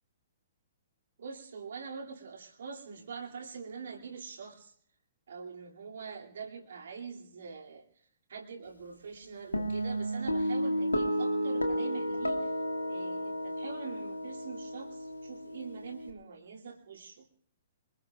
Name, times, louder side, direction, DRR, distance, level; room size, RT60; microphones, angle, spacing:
voice 1, 1.2-4.7 5.3-12.5 12.8-17.3, right 5 dB, 65° right, 0 dB, 2.7 m, -44 dB
Guitar, 9.5-16.1, equal, 90° left, 1.9 m, -32 dB
25.5 x 21.5 x 2.4 m, 0.64 s
figure-of-eight pair, 120°, 0 cm